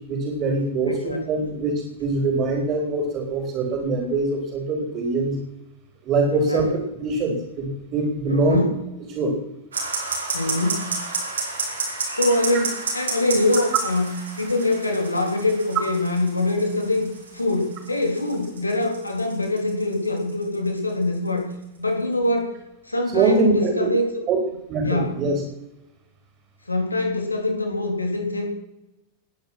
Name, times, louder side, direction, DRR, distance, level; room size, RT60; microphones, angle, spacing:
voice 1, 0.1-5.4 6.0-6.6 7.0-8.6 9.1-9.4 23.1-23.9 24.3-24.4 24.7-25.4, right 3 dB, 35° right, 3 dB, 4.3 m, -23 dB
voice 2, 0.9-1.2 6.3-6.6 8.3-8.7 10.3-10.9 12.2-21.5 21.8-22.6 22.9-24.2 24.8-25.2 26.7-28.5, left 2 dB, 80° left, 3 dB, 3.6 m, -24 dB
sound 1, 9.7-21.8, right 3 dB, 70° right, 5.2 m, -31 dB
20.0 x 10.5 x 6.2 m, 0.92 s
figure-of-eight pair, 90°, 0 cm